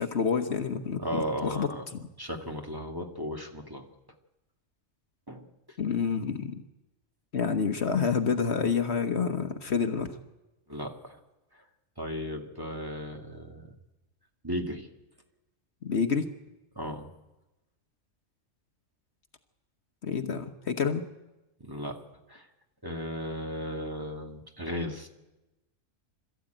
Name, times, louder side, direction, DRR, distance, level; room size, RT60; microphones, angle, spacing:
voice 1, 0.0-2.1 5.8-6.5 7.3-10.1 15.8-16.3 20.0-21.0, left 6 dB, 55° left, 8 dB, 1.4 m, -28 dB
voice 2, 1.0-1.8 2.2-3.8 5.3-5.5 10.7-11.2 12.0-13.7 14.4-14.9 16.8-17.1 21.7-22.0 22.3-22.5 22.8-25.1, equal, 15° right, 3 dB, 1.9 m, -35 dB
26.0 x 14.0 x 9.1 m, 1.0 s
omnidirectional pair, 1.3 m